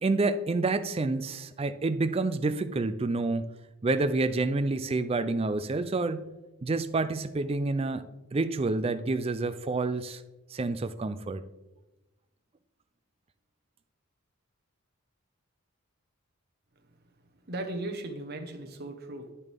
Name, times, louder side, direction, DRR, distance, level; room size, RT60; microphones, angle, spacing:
voice 1, 0.0-3.5 3.8-6.3 6.6-8.0 8.3-10.2 10.5-11.4, right 3 dB, 25° right, 11 dB, 0.4 m, -28 dB
voice 2, 17.4-19.3, right 2 dB, 45° right, 4 dB, 1.1 m, -37 dB
9.9 x 6.9 x 3.5 m, 1.1 s
head